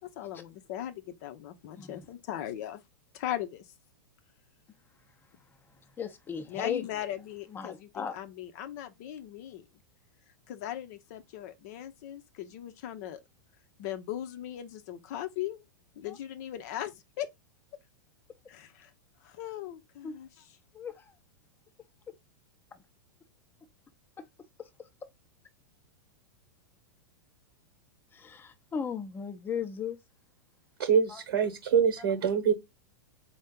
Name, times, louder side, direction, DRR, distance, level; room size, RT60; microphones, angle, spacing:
voice 1, 0.0-2.8 3.1-3.6 6.5-9.6 10.5-13.2 13.8-15.6 16.0-17.3 18.5-18.9 19.2-20.4, left 12 dB, 55° left, 0.8 m, -38 dB
voice 2, 6.0-6.9 7.5-8.1 16.1-16.2 20.0-20.1 20.7-21.1 28.1-30.0 31.1-31.2 32.0-32.1, left 7 dB, 20° left, 0.8 m, -36 dB
voice 3, 30.8-32.5, right 7 dB, 60° right, 1.1 m, -25 dB
4.4 x 2.4 x 3.6 m
hypercardioid pair, 100°, 11 cm